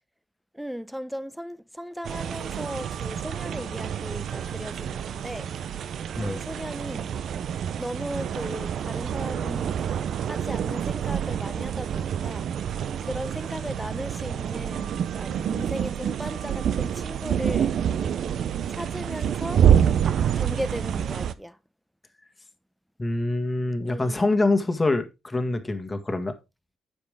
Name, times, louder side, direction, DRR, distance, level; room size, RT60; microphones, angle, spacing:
voice 1, 0.5-5.5 6.2-7.1 7.8-9.8 10.3-12.5 13.0-17.8 18.7-19.7 20.4-21.6 23.8-24.4, equal, ahead, 0.7 m, -36 dB
sound 1, 2.0-21.3, right 9 dB, 65° right, 0.6 m, -27 dB
voice 2, 6.2-6.5 23.0-26.4, left 2 dB, 20° left, 1.7 m, -25 dB
9.7 x 7.1 x 3.5 m
cardioid pair, 90°, 0 cm